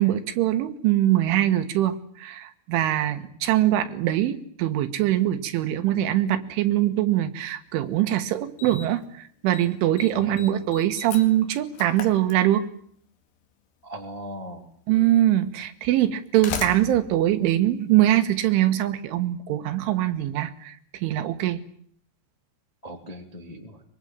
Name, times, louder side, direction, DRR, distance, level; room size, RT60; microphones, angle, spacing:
voice 1, 0.0-12.7 14.9-21.6, right 13 dB, 80° right, 10 dB, 3.9 m, -23 dB
Slam, 7.8-7.9 8.6-9.1 9.3-9.7 10.0-12.9 14.0-14.1 15.0-15.1 16.0-18.4, left 7 dB, 65° left, 4.0 m, -38 dB
voice 2, 10.1-10.7 13.8-14.7 22.8-23.8, equal, 15° left, 3 dB, 1.2 m, -39 dB
23.5 x 22.5 x 9.0 m, 0.62 s
omnidirectional pair, 5.6 m